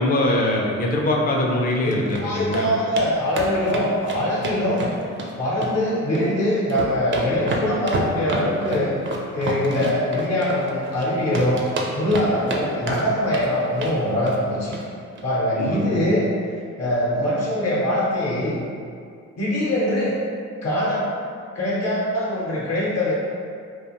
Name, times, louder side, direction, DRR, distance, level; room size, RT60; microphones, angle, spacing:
voice 1, 0.0-2.7 15.6-16.0, left 1 dB, 30° left, -1 dB, 0.4 m, -22 dB
sound 1, 1.7-2.2 2.5-2.6 3.0-3.1 3.3-5.3 5.6-6.3 6.6-11.0 11.3-12.6 12.9-13.5 13.8-14.0 14.3-14.4 14.7-14.8 15.1-15.2, right 2 dB, 40° right, 0.4 m, -29 dB
voice 2, 1.8-4.8 5.4-9.0 9.3-11.6 11.9-14.7 15.2-16.2 16.8-18.6 19.4-20.1 20.6-21.1 21.5-23.1, left 1 dB, 55° left, -6 dB, 0.8 m, -23 dB
2.4 x 2.3 x 2.9 m, 2.3 s
cardioid pair, 90°, 30 cm